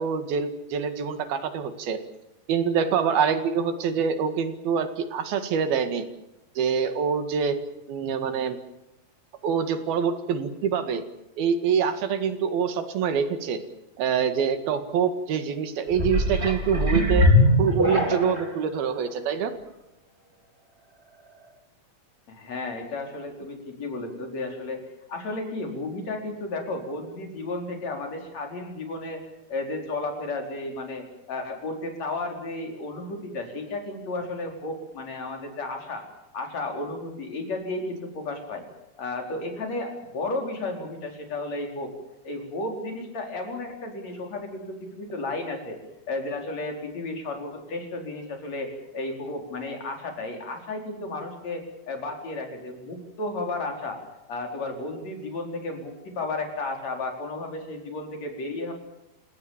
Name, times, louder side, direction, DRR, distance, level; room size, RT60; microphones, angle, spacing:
voice 1, 0.0-2.0 2.5-6.1 6.6-7.6 7.9-8.6 9.4-11.0 11.4-13.6 14.0-17.3 17.6-19.5, right 7 dB, 75° right, 9 dB, 3.8 m, -25 dB
sound 1, 15.9-18.5 19.2-19.3, left 1 dB, 15° right, 3.7 m, -21 dB
voice 2, 22.3-29.2 29.5-36.1 36.3-38.7 39.0-41.9 42.2-45.8 46.1-54.0 54.3-58.7, left 2 dB, 45° left, 3 dB, 5.5 m, -33 dB
28.5 x 18.0 x 7.3 m, 0.93 s
omnidirectional pair, 4.4 m